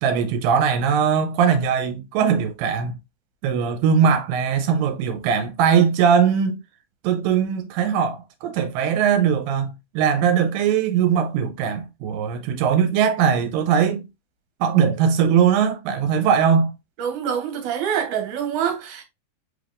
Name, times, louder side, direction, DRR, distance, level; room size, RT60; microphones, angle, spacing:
voice 1, 0.0-2.9 3.4-6.6 7.0-14.1 14.6-16.7, right 7 dB, 85° right, 2.2 m, -20 dB
voice 2, 17.0-19.0, right 8 dB, 70° right, 2.3 m, -25 dB
5.0 x 3.5 x 2.4 m
omnidirectional pair, 3.9 m